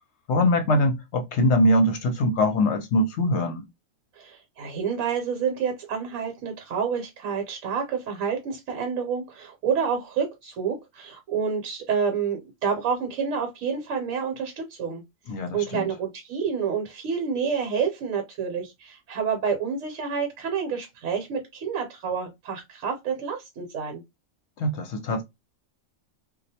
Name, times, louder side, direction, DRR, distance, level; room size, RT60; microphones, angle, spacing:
voice 1, 0.3-3.6 15.3-15.9 24.6-25.2, left 1 dB, 65° left, 0.8 m, -22 dB
voice 2, 4.2-15.0 15.5-24.0, right 6 dB, 70° right, 1.0 m, -28 dB
2.3 x 2.0 x 2.7 m
omnidirectional pair, 1.4 m